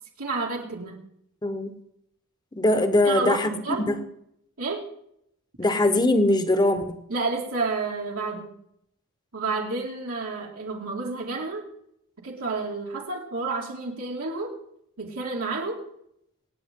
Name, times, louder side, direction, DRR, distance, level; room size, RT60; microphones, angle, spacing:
voice 1, 0.2-1.0 3.0-3.8 4.6-4.8 7.1-8.5 9.3-11.6 12.2-14.5 15.0-15.8, right 3 dB, 80° right, 2.5 m, -30 dB
voice 2, 1.4-1.7 2.5-3.5 3.9-4.0 5.6-7.0, left 2 dB, 20° left, 1.1 m, -21 dB
26.0 x 8.9 x 3.7 m
head